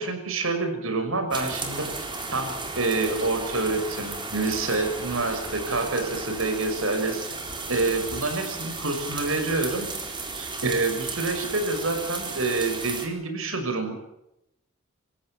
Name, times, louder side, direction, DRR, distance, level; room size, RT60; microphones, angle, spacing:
voice 1, 0.0-1.9 2.3-7.2 7.7-9.9 10.3-14.0, right 3 dB, 80° right, 6 dB, 6.4 m, -27 dB
sound 1, 1.3-13.1, right 3 dB, 25° right, 4.0 m, -34 dB
27.0 x 15.5 x 8.8 m, 0.84 s
head